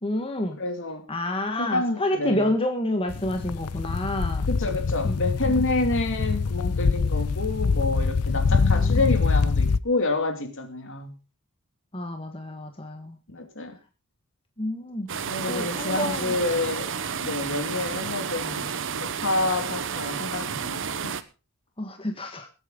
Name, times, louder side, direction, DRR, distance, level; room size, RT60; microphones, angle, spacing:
voice 1, 0.0-0.6 1.1-4.5 5.0-5.2 8.5-9.1 11.9-13.2 14.6-15.1 15.5-16.4 21.8-22.5, left 1 dB, 25° left, 5 dB, 1.6 m, -29 dB
voice 2, 0.6-1.1 1.6-2.5 4.5-11.1 13.3-13.8 15.3-16.9 17.2-18.7 19.0-21.1, left 2 dB, 60° left, 6 dB, 2.6 m, -28 dB
sound 1, 3.1-9.8, left 4 dB, 85° left, 0.6 m, -24 dB
sound 2, 15.1-21.2, right 6 dB, 60° right, 1.0 m, -31 dB
21.0 x 8.9 x 3.9 m, 0.31 s
head